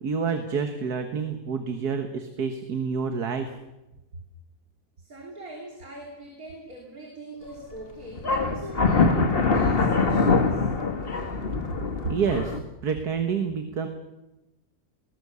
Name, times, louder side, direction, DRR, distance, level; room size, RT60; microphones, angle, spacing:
voice 1, 0.0-3.5 12.0-12.6 12.8-13.9, right 6 dB, 90° right, 7 dB, 2.0 m, -28 dB
voice 2, 5.0-10.7, right 1 dB, 65° right, 0 dB, 3.7 m, -42 dB
sound 1, 7.4-7.8 8.2-12.6, left 4 dB, 40° left, 1.8 m, -23 dB
21.5 x 19.5 x 6.9 m, 0.97 s
omnidirectional pair, 1.6 m